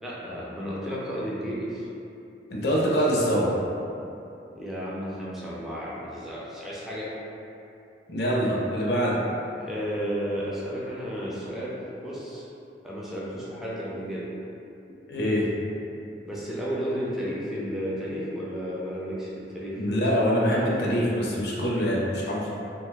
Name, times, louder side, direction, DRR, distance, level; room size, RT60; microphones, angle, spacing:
voice 1, 0.0-1.9 4.5-7.1 9.6-12.5 12.8-14.3 16.2-19.8, equal, ahead, -7 dB, 0.4 m, -33 dB
voice 2, 2.5-3.5 8.1-9.1 15.1-15.5 19.8-22.5, equal, 65° left, -4 dB, 0.5 m, -24 dB
2.6 x 2.2 x 3.3 m, 2.8 s
head